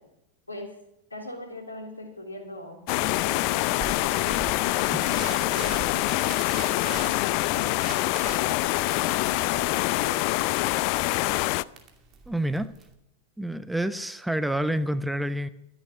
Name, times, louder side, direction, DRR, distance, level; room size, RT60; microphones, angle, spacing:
voice 1, 1.1-4.4 4.7-6.2 6.6-10.5, left 1 dB, 85° left, 1 dB, 3.3 m, -41 dB
sound 1, 2.9-11.6, left 20 dB, 45° left, 0.4 m, -25 dB
sound 2, 3.8-12.9, right 5 dB, 35° right, 2.6 m, -41 dB
voice 2, 12.3-12.7 13.4-15.5, right 1 dB, 5° right, 13 dB, 0.7 m, -28 dB
13.5 x 10.5 x 6.1 m, 0.82 s
figure-of-eight pair, 90°, 0 cm